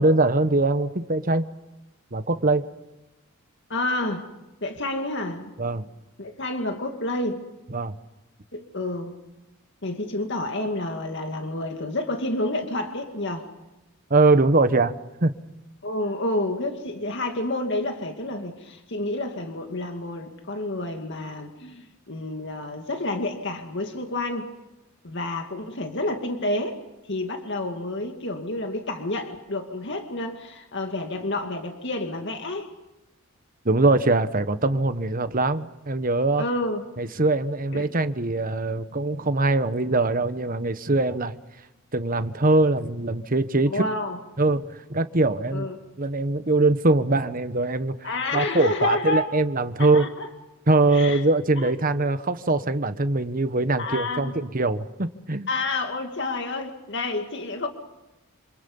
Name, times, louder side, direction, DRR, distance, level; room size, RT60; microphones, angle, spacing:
voice 1, 0.0-1.5 2.1-2.6 5.6-5.8 7.7-8.0 14.1-14.9 15.2-15.3 33.6-36.4 37.0-41.4 41.9-43.8 44.4-45.7 46.0-50.1 50.7-55.5, right 2 dB, 40° right, 11 dB, 1.2 m, -22 dB
voice 2, 3.7-4.3 4.6-5.5 6.2-7.4 8.5-9.1 9.8-13.5 15.8-24.5 25.0-32.7 36.4-36.8 37.7-37.8 43.7-44.2 45.5-45.8 48.0-49.3 49.8-50.3 50.9-51.2 51.6-51.7 53.8-54.3 55.5-57.7, left 2 dB, 55° left, 4 dB, 2.2 m, -29 dB
28.0 x 27.0 x 5.5 m, 1.0 s
head